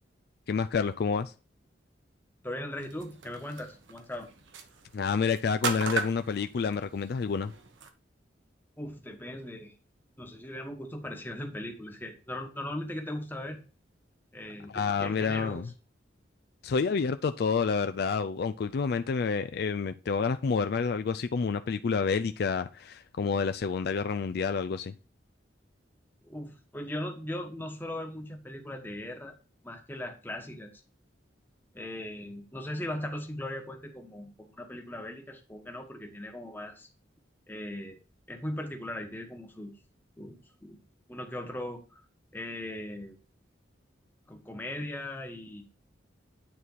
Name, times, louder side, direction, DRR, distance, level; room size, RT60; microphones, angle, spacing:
voice 1, 0.5-1.3 4.9-7.5 14.7-15.7 16.6-24.9, left 5 dB, 55° left, 0.4 m, -29 dB
voice 2, 2.4-4.3 8.8-9.7 10.2-13.6 14.3-15.6 26.2-29.4 29.6-30.7 31.7-36.9 37.5-38.0 38.3-39.7 40.2-40.8 41.1-42.0 42.3-43.2 44.3-45.7, left 1 dB, 10° left, 1.2 m, -39 dB
sound 1, 2.8-7.9, right 4 dB, 85° right, 1.1 m, -38 dB
9.5 x 4.2 x 4.6 m
head